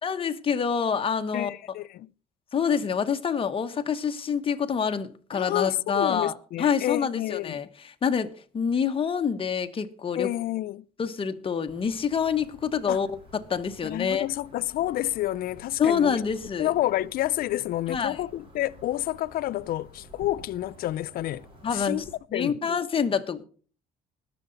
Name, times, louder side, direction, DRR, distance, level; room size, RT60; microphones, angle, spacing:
voice 1, 0.0-1.6 2.5-10.3 11.0-13.2 13.5-14.3 15.8-16.7 17.9-18.2 21.6-22.0 22.3-23.4, left 6 dB, 30° left, 1.1 m, -27 dB
voice 2, 1.3-2.1 5.3-7.6 10.2-10.8 12.9-13.0 13.8-16.2 16.6-21.5 21.7-22.0 22.3-22.8, left 14 dB, 60° left, 0.5 m, -29 dB
sound 1, 11.7-22.2, right 1 dB, 30° right, 3.9 m, -51 dB
20.5 x 6.9 x 3.9 m
cardioid pair, 110°, 17 cm